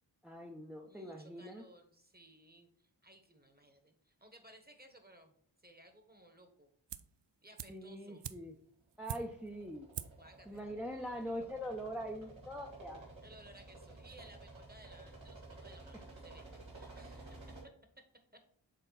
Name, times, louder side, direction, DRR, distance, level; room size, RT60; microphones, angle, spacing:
voice 1, 0.2-1.6 7.7-8.5 9.0-9.9 10.5-13.0, equal, 5° right, 1 dB, 0.7 m, -43 dB
voice 2, 0.8-6.7 7.4-8.2 10.2-10.7 13.2-17.4 17.6-17.7, right 1 dB, 20° right, 6 dB, 1.3 m, -60 dB
sound 1, 6.9-7.2 7.6-9.6 9.9-10.3 10.6-10.7, right 10 dB, 65° right, 0.5 m, -45 dB
sound 2, 8.9-17.6, right 2 dB, 85° right, 2.2 m, -53 dB
6.7 x 3.8 x 4.0 m, 0.63 s
cardioid pair, 45°, 45 cm